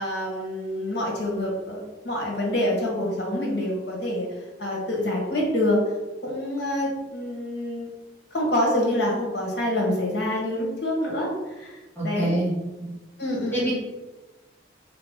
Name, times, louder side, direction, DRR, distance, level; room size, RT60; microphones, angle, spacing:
voice 1, 0.0-4.3 4.6-5.8 6.2-7.9 8.3-11.3 11.6-11.7 12.0-12.3 13.2-13.7, left 1 dB, 60° left, -2 dB, 1.2 m, -26 dB
voice 2, 12.0-12.5 12.8-12.9 13.5-13.7, right 1 dB, 10° left, -8 dB, 1.4 m, -25 dB
3.7 x 2.9 x 3.6 m, 1.1 s
head